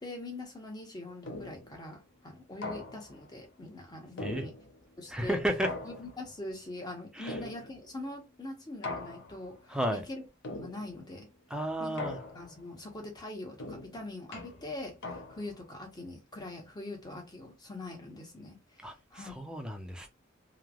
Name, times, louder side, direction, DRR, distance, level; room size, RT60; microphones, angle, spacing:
voice 1, 0.0-4.5 5.0-5.4 5.8-10.2 10.5-11.3 11.8-12.0 12.3-19.4, left 2 dB, 20° left, 0.8 m, -43 dB
sound 1, 1.3-1.8 2.6-3.3 4.2-4.9 5.6-6.4 7.3-8.0 8.8-9.6 10.4-11.1 12.0-12.7 13.6-15.6, left 2 dB, 65° left, 0.6 m, -41 dB
voice 2, 5.1-5.7 7.1-7.4 9.7-10.0 11.5-12.2 18.8-20.1, right 1 dB, 5° right, 0.5 m, -33 dB
3.1 x 2.0 x 2.4 m
head